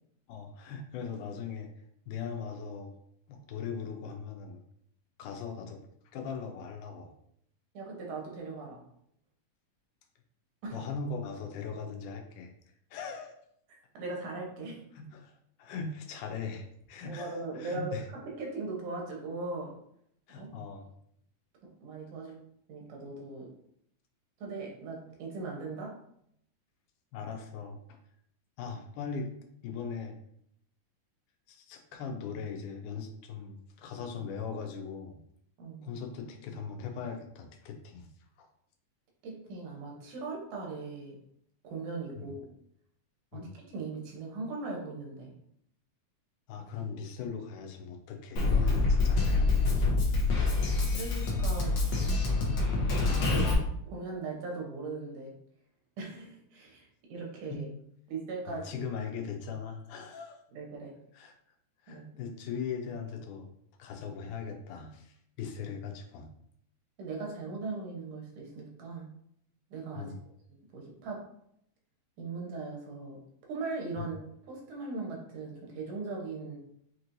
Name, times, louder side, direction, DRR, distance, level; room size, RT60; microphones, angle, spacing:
voice 1, 0.3-1.7 2.1-2.9 3.3-4.6 5.2-5.8 6.1-7.1 10.7-12.5 12.9-13.3 14.9-18.1 20.3-20.9 27.1-28.0 28.6-29.3 29.6-30.2 31.5-35.2 35.8-38.1 38.4-38.5 42.2-42.3 43.3-43.5 46.5-50.0 57.5-57.6 58.5-60.4 61.1-61.4 61.8-63.5 63.8-66.3 70.0-70.2 74.0-74.1, left 5 dB, 85° left, 3 dB, 2.2 m, -39 dB
voice 2, 7.7-8.8 10.6-10.8 13.7-14.8 17.0-19.7 20.4-20.5 21.8-22.4 22.7-23.5 24.4-26.0 35.6-35.8 39.2-41.2 41.6-42.5 43.3-45.3 50.9-51.7 53.2-55.3 56.0-57.7 58.1-58.8 60.5-60.9 61.9-62.1 67.0-69.1 69.7-70.1 70.7-71.2 72.2-74.2 74.5-76.6, right 3 dB, 80° right, -1 dB, 2.4 m, -39 dB
Drum kit, 48.4-53.5, left 3 dB, 70° left, 1.3 m, -26 dB
6.1 x 3.0 x 2.6 m, 0.72 s
omnidirectional pair, 3.5 m